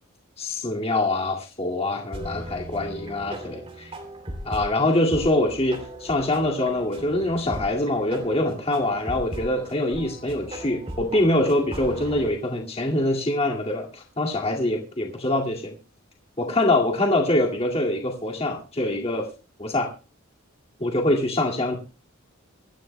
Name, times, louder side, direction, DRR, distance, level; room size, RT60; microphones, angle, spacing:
voice 1, 0.4-3.9 4.4-15.8 16.4-19.3 19.6-19.9 20.8-21.8, left 1 dB, 30° left, 0 dB, 2.1 m, -24 dB
sound 1, 2.1-12.3, right 1 dB, 30° right, 2.8 m, -38 dB
25.5 x 14.5 x 2.2 m, 0.31 s
head